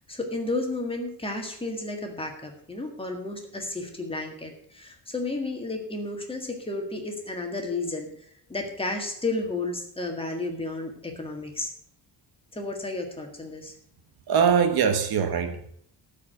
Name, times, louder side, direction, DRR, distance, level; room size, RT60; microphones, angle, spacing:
voice 1, 0.1-8.1 8.5-11.7 12.5-13.7, left 2 dB, 15° left, 1.7 m, -32 dB
voice 2, 14.3-15.7, right 7 dB, 60° right, 1.2 m, -22 dB
13.0 x 5.0 x 7.5 m
wide cardioid pair, 180°, 42 cm